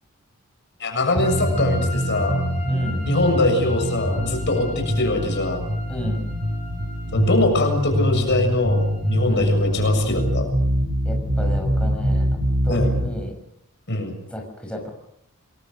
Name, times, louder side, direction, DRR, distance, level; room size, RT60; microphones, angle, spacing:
voice 1, 0.8-2.4 3.0-5.7 7.1-10.5 12.7-12.9 13.9-14.1, left 2 dB, 55° left, 5 dB, 7.1 m, -22 dB
sound 1, 1.2-10.3, left 1 dB, 30° left, 5.5 m, -39 dB
sound 2, 1.2-13.1, equal, 40° right, 7.7 m, -23 dB
voice 2, 2.7-3.0 5.9-6.2 9.3-9.5 11.0-13.3 14.3-14.9, equal, 5° left, 1 dB, 6.1 m, -32 dB
29.0 x 21.5 x 6.5 m, 0.73 s
head